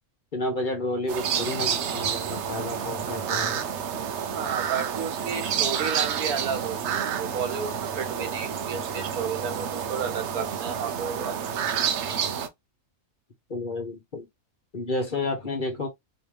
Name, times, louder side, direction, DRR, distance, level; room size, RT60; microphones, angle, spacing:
voice 1, 0.3-3.6 13.5-14.3 14.7-15.9, left 2 dB, 35° left, 1.2 m, -31 dB
sound 1, 1.1-12.5, right 8 dB, 60° right, 0.9 m, -29 dB
voice 2, 4.3-11.5, right 6 dB, 80° right, 1.5 m, -32 dB
3.4 x 3.2 x 3.1 m
omnidirectional pair, 1.5 m